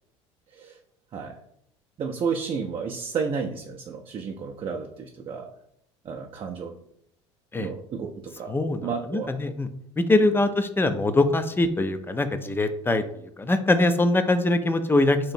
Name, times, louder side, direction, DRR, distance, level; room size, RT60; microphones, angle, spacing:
voice 1, 2.0-5.5 6.0-6.7 7.6-8.5 8.8-9.3, right 5 dB, 35° right, 1 dB, 0.5 m, -31 dB
voice 2, 8.5-9.7 10.0-13.0 13.4-15.3, left 2 dB, 15° left, 10 dB, 0.4 m, -23 dB
2.9 x 2.6 x 4.2 m, 0.74 s
hypercardioid pair, 70°, 15 cm